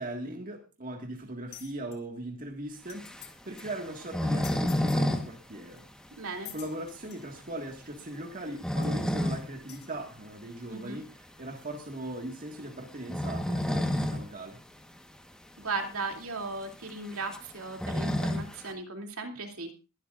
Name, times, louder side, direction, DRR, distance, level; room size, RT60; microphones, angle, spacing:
voice 1, 0.0-3.1 3.5-5.9 6.5-14.6, right 1 dB, 40° right, 2 dB, 1.8 m, -39 dB
sound 1, 1.5-2.0 2.5-2.6 2.8-3.3 3.6-3.7 4.4-5.0 5.8-5.9 6.5-7.3 8.2-8.3 8.8-8.9 9.7-9.9, left 11 dB, 75° left, 3.2 m, -47 dB
sound 2, 2.9-5.3 5.5-5.6 6.0-6.1 6.6-6.7 8.3-9.5 9.9-10.0 11.5-11.8 12.9-14.2 14.6-14.7 14.9-15.0 15.8-15.9 16.1-18.7, left 1 dB, 5° left, 1.3 m, -30 dB
voice 2, 6.2-6.5 10.7-11.0 15.6-19.7, right 3 dB, 70° right, 3 dB, 2.8 m, -37 dB
22.5 x 12.0 x 2.5 m, 0.29 s
head